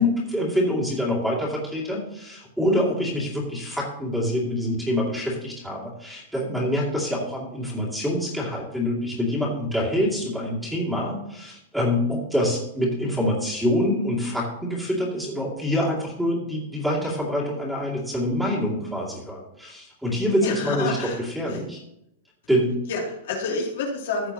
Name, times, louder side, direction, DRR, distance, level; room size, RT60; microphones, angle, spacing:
voice 1, 0.0-21.8 22.5-22.7, left 1 dB, ahead, -4 dB, 2.4 m, -26 dB
voice 2, 20.4-21.6 22.9-24.3, left 3 dB, 65° left, -1 dB, 2.7 m, -29 dB
15.0 x 6.6 x 2.9 m, 0.80 s
supercardioid pair, 155°, 0 cm